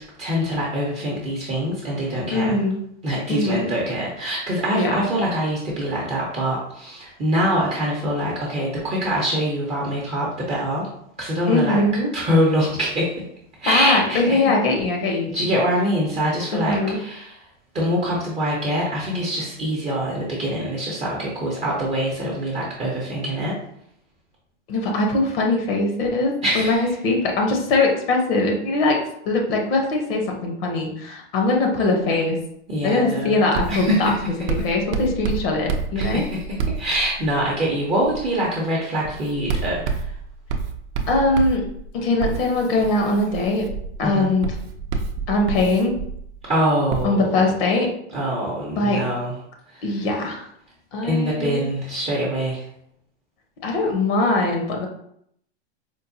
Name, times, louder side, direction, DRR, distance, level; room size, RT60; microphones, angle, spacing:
voice 1, 0.2-2.6 3.0-10.9 11.2-11.8 12.1-13.2 13.6-14.5 15.3-17.4 17.7-23.5 26.4-26.9 32.7-33.4 33.7-34.1 36.0-36.4 36.8-40.1 44.0-44.3 46.5-47.5 48.1-49.3 49.7-49.9 51.0-52.7, equal, 20° right, -4 dB, 0.6 m, -24 dB
voice 2, 2.3-2.8 3.3-3.7 4.7-5.1 11.5-12.1 13.7-15.3 16.5-17.0 24.7-26.8 27.0-29.0 29.3-32.4 32.8-34.1 34.6-36.2 41.1-41.7 41.9-43.7 44.0-44.5 45.3-45.9 47.0-47.9 48.8-49.0 49.8-50.5 50.9-51.6 53.6-54.9, left 2 dB, 55° left, 2 dB, 0.8 m, -21 dB
Writing, 33.5-37.5 38.0-38.3 39.0-46.4 46.9-47.0, right 4 dB, 70° right, 0.6 m, -29 dB
4.5 x 2.1 x 2.6 m, 0.72 s
hypercardioid pair, 135°, 35 cm